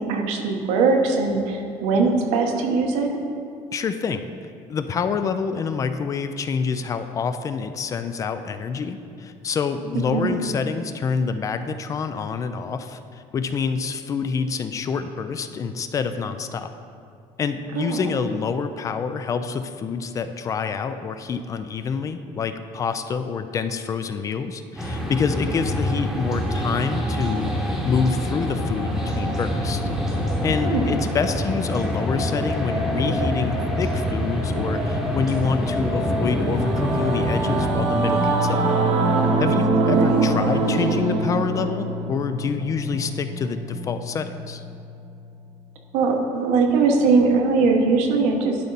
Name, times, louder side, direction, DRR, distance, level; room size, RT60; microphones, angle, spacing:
voice 1, 0.0-3.2 10.1-10.3 17.7-18.1 30.6-30.9 39.8-40.2 45.9-48.6, right 4 dB, 85° right, 3 dB, 1.0 m, -21 dB
voice 2, 3.7-4.3 4.7-16.7 17.4-29.9 30.4-38.6 39.4-44.6, left 5 dB, 30° left, 9 dB, 0.3 m, -27 dB
sound 1, 24.8-37.7, equal, ahead, 1.0 m, -25 dB
Singing / Musical instrument, 35.7-45.4, right 2 dB, 60° right, 1.0 m, -24 dB
11.5 x 4.2 x 4.0 m, 2.4 s
cardioid pair, 145°, 12 cm